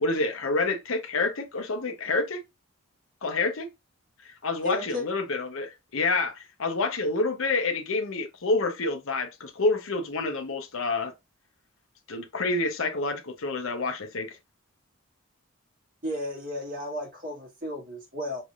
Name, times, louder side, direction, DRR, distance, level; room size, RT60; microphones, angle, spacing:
voice 1, 0.0-2.4 3.2-3.7 4.2-11.1 12.1-14.3, left 3 dB, 65° left, 0.7 m, -28 dB
voice 2, 4.6-5.1 16.0-18.4, left 1 dB, 40° right, 1.7 m, -33 dB
5.3 x 3.3 x 2.4 m
head